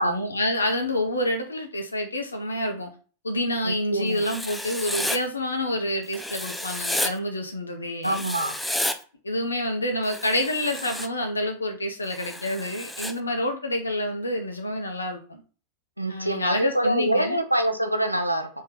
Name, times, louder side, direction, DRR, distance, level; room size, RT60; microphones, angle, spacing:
voice 1, 0.0-2.9 3.2-8.2 9.2-15.4 16.1-17.4, left 1 dB, 75° left, 0.9 m, -28 dB
voice 2, 3.6-4.2 8.0-8.5 16.0-18.5, right 1 dB, 90° right, 0.6 m, -25 dB
Writing, 4.2-5.2 6.1-7.1 8.0-9.0 10.0-11.1 12.1-13.1, left 1 dB, 5° left, 0.4 m, -31 dB
4.3 x 3.1 x 3.7 m
figure-of-eight pair, 90°, 0 cm